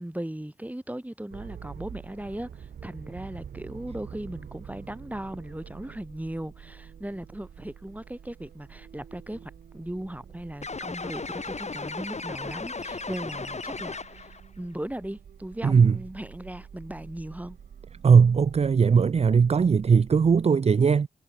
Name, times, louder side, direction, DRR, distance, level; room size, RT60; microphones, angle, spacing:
voice 1, 0.0-17.6, right 1 dB, 10° right, 4.7 m, -38 dB
sound 1, 1.3-20.5, right 8 dB, 80° right, 3.4 m, -47 dB
sound 2, 10.6-14.4, left 4 dB, 45° left, 5.4 m, -35 dB
voice 2, 15.6-16.0 18.0-21.1, right 6 dB, 45° right, 0.5 m, -19 dB
cardioid pair, 45°, 15 cm